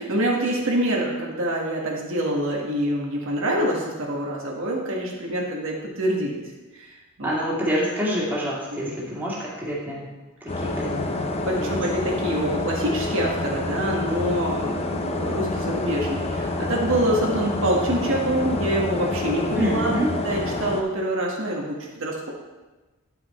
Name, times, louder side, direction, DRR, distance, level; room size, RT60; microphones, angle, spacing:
voice 1, 0.0-6.4 6.7-7.4 8.8-9.1 11.0-20.0 20.2-22.3, right 1 dB, 60° right, -2 dB, 1.4 m, -26 dB
voice 2, 7.2-10.1 10.4-11.3 11.6-11.8 19.5-20.1, equal, 10° right, -6 dB, 2.1 m, -27 dB
sound 1, 10.5-20.8, left 2 dB, 30° left, 0.6 m, -28 dB
9.8 x 6.0 x 4.2 m, 1.2 s
head